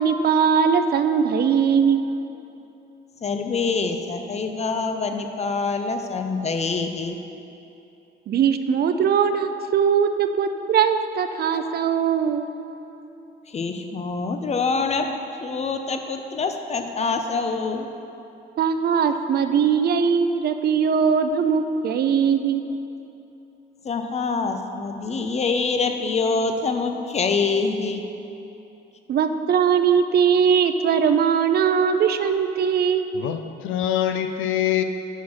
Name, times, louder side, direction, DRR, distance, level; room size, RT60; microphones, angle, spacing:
voice 1, 0.0-2.1 8.3-12.5 18.6-22.6 29.1-33.1, right 7 dB, 55° right, 9 dB, 0.4 m, -20 dB
voice 2, 3.2-7.2 13.5-15.1 15.4-17.9 23.8-28.0, left 4 dB, 35° left, 6 dB, 0.6 m, -25 dB
voice 3, 33.1-34.8, left 11 dB, 90° left, 8 dB, 0.4 m, -24 dB
5.6 x 4.7 x 6.0 m, 2.9 s
cardioid pair, 90°, 20 cm